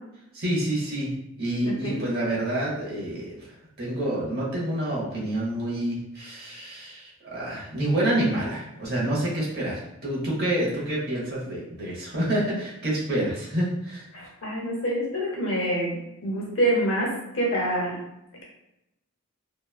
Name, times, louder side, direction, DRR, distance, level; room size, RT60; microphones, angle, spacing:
voice 1, 0.3-1.1 1.4-14.1, right 1 dB, 45° right, -6 dB, 0.9 m, -28 dB
voice 2, 14.1-18.0, right 1 dB, 60° left, -3 dB, 0.8 m, -26 dB
2.9 x 2.2 x 2.3 m, 0.88 s
head